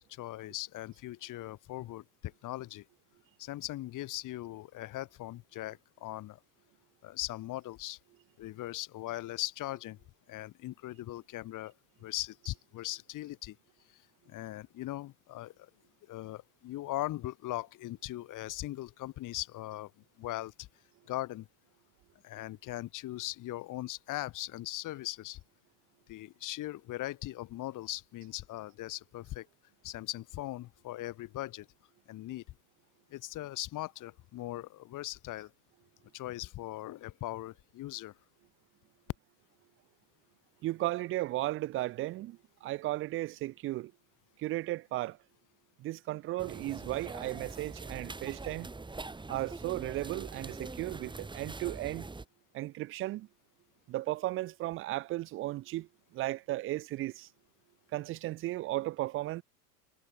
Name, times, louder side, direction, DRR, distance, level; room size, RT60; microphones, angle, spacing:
voice 1, 0.0-2.8 3.4-6.4 7.0-8.0 8.4-10.0 10.3-11.7 12.0-13.6 13.9-14.0 14.3-15.7 16.1-19.9 20.2-20.7 21.1-21.5 22.2-25.4 26.1-29.5 29.8-31.7 32.1-32.4 33.1-35.5 36.1-38.1, left 16 dB, 40° left, 2.6 m, -39 dB
voice 2, 40.6-43.9 44.4-45.2 45.8-48.7 49.3-52.1 52.5-53.3 53.9-57.3 57.9-59.4, right 17 dB, 30° right, 0.5 m, -35 dB
sound 1, 46.4-52.3, right 3 dB, 10° right, 3.8 m, -43 dB
supercardioid pair, 115°, 48 cm